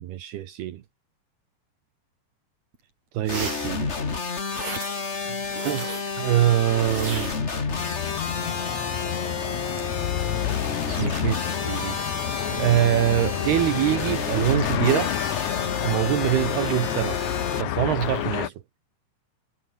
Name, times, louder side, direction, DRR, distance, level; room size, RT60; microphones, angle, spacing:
voice 1, 0.0-0.8 3.1-3.9 5.3-5.4 5.7-5.9 6.2-7.3 11.0-12.0 12.5-15.1 15.8-17.2 17.6-18.5, right 12 dB, 75° right, 3.4 m, -24 dB
sound 1, 2.7-2.8 3.2-3.8 4.5-5.1 5.5-6.1 6.9-8.2 8.5-9.1 9.7-10.3 10.9-11.5 12.1-12.7 13.6-14.0 14.6-14.9 15.4-17.6 17.9-18.5, right 4 dB, 40° right, 7.2 m, -39 dB
sound 2, 3.3-17.6, left 4 dB, 65° left, 0.6 m, -30 dB
sound 3, 7.7-18.5, left 14 dB, 90° left, 1.6 m, -30 dB
omnidirectional pair, 4.8 m